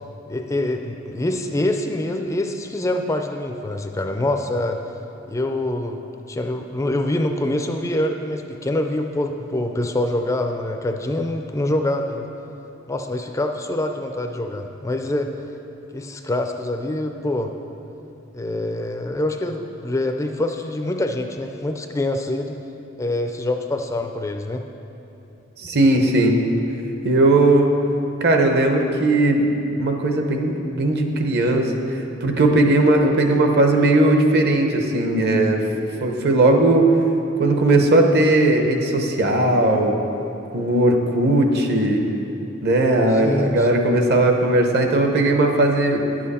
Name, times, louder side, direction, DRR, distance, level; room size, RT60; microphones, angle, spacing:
voice 1, 0.3-4.8 5.3-6.0 6.3-12.3 12.9-15.3 15.9-17.5 18.3-22.6 23.0-24.6 43.1-43.7, left 1 dB, 15° left, 5 dB, 0.3 m, -25 dB
voice 2, 25.6-26.4 27.0-27.7 28.2-29.4 29.8-35.6 36.0-36.8 37.4-40.0 40.5-42.0 42.6-46.0, right 2 dB, 55° right, 3 dB, 0.9 m, -18 dB
10.5 x 7.5 x 4.2 m, 2.9 s
head